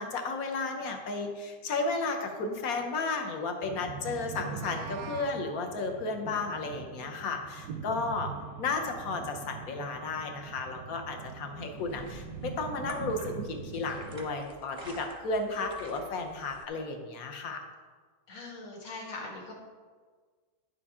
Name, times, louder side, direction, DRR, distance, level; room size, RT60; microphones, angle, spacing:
voice 1, 0.0-8.3 8.6-17.7, left 3 dB, 55° left, 4 dB, 1.1 m, -33 dB
sound 1, 3.6-14.2, right 6 dB, 65° right, 1.0 m, -43 dB
Meow, 4.3-5.4, right 6 dB, 80° right, 1.4 m, -44 dB
sound 2, 11.5-16.6, right 2 dB, 30° right, 0.6 m, -48 dB
voice 2, 18.3-19.5, left 3 dB, 80° left, -1 dB, 2.5 m, -41 dB
9.8 x 7.1 x 3.6 m, 1.5 s
omnidirectional pair, 2.2 m